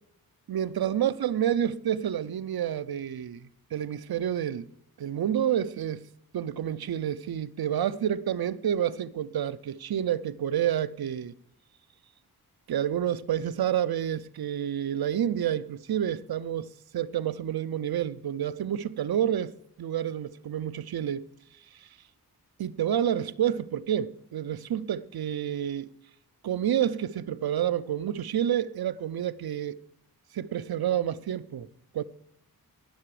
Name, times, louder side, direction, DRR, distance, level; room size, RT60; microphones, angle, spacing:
voice 1, 0.5-3.4 3.7-4.7 5.0-6.0 6.3-11.3 12.7-21.3 21.8-21.9 22.6-25.9 26.4-29.8 30.3-31.7 31.9-32.0, right 10 dB, 80° right, 0.7 m, -29 dB
19.0 x 6.8 x 4.9 m
wide cardioid pair, 95°, 37 cm